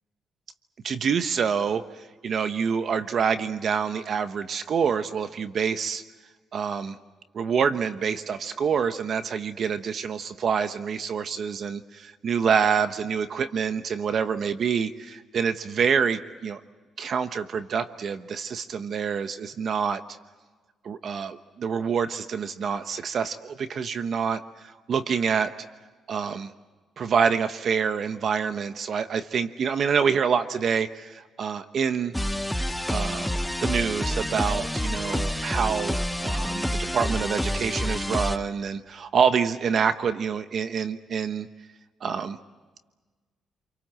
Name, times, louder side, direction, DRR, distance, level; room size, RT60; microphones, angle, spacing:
voice 1, 0.8-6.0 6.5-7.0 7.3-16.6 17.0-20.0 20.8-25.5 26.1-26.5 27.0-32.1 32.9-33.3 33.6-41.5 42.0-42.4, right 6 dB, 55° right, 10 dB, 1.1 m, -26 dB
sound 1, 32.1-38.4, equal, 5° left, 0.9 m, -28 dB
28.5 x 23.5 x 7.6 m, 1.3 s
cardioid pair, 90°, 0 cm